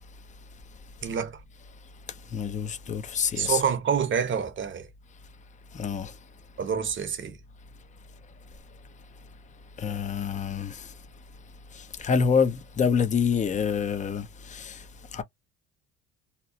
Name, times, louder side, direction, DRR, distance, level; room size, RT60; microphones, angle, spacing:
voice 1, 1.0-1.4 3.4-4.9 6.6-7.4, right 7 dB, 40° right, 0.9 m, -27 dB
voice 2, 2.3-3.6 5.7-6.1 9.8-10.8 12.0-14.3 14.5-14.8 15.1-15.2, left 6 dB, 25° left, 0.6 m, -26 dB
2.9 x 2.0 x 2.7 m
supercardioid pair, 85°, 31 cm